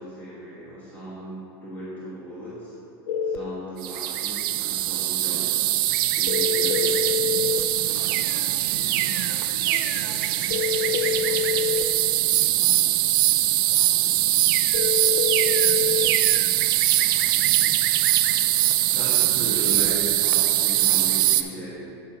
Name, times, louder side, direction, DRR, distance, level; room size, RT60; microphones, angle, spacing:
voice 1, 0.0-2.7 3.2-5.6 6.1-7.0 18.9-21.9, right 1 dB, 15° left, -10 dB, 1.6 m, -36 dB
sound 1, 3.1-3.4 6.3-7.7 10.5-11.9 14.7-16.2, left 6 dB, 85° left, 0.4 m, -26 dB
sound 2, 3.8-21.4, right 14 dB, 60° right, 0.4 m, -22 dB
voice 2, 7.8-12.9 13.7-14.2, equal, 40° left, -6 dB, 1.9 m, -45 dB
9.2 x 7.8 x 2.8 m, 2.7 s
supercardioid pair, 160°, 13 cm